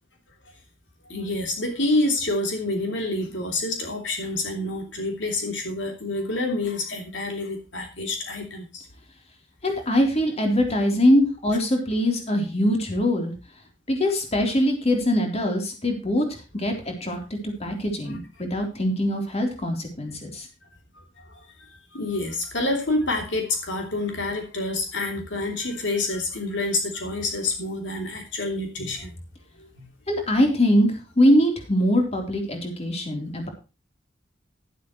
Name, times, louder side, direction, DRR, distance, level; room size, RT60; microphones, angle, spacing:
voice 1, 1.1-8.9 21.3-21.4 21.9-29.1 29.6-29.9, left 2 dB, 70° left, 3 dB, 3.0 m, -27 dB
voice 2, 9.6-13.3 13.9-17.2 17.6-20.5 30.1-33.5, equal, 35° left, 3 dB, 3.6 m, -22 dB
12.0 x 11.5 x 3.1 m, 0.30 s
head